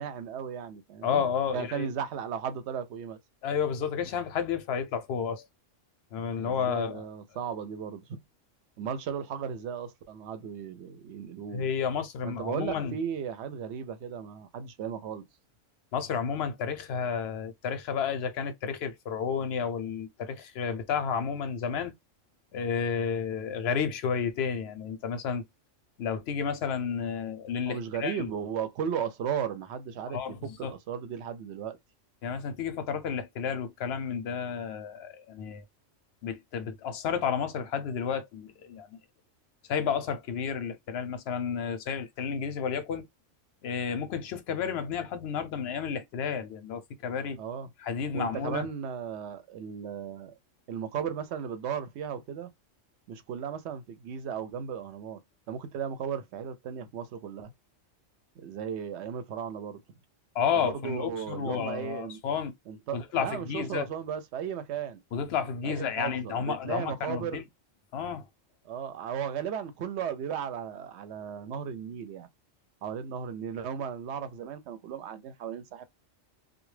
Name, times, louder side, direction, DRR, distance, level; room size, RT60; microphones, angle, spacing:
voice 1, 0.0-1.3 1.5-3.2 6.3-8.2 8.8-11.7 12.2-15.3 27.6-30.2 30.6-31.8 47.4-47.7 48.1-50.3 50.7-52.5 53.1-55.2 55.5-57.5 58.4-59.8 60.5-62.2 62.7-65.0 65.6-67.4 68.6-72.3 72.8-75.8, right 8 dB, 65° right, 0.8 m, -35 dB
voice 2, 1.0-1.9 3.4-5.4 6.1-7.0 11.5-12.9 15.9-21.9 22.5-25.4 26.0-28.3 30.1-30.7 32.2-35.6 36.2-39.0 39.7-43.0 43.6-47.4 47.8-48.7 60.3-62.6 62.9-63.9 65.1-67.4 67.9-68.2, left 7 dB, 65° left, 0.7 m, -31 dB
2.2 x 2.1 x 3.1 m
omnidirectional pair, 1.3 m